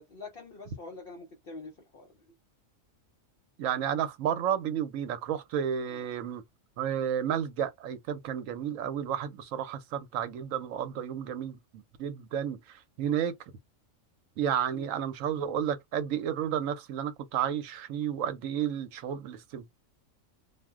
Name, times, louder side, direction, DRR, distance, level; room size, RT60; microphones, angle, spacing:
voice 1, 0.0-2.1 5.9-6.0 14.7-14.9, left 3 dB, 55° left, 0.7 m, -45 dB
voice 2, 3.6-6.4 6.8-13.4 14.4-19.7, right 9 dB, 75° right, 1.0 m, -32 dB
2.5 x 2.1 x 3.5 m
omnidirectional pair, 1.4 m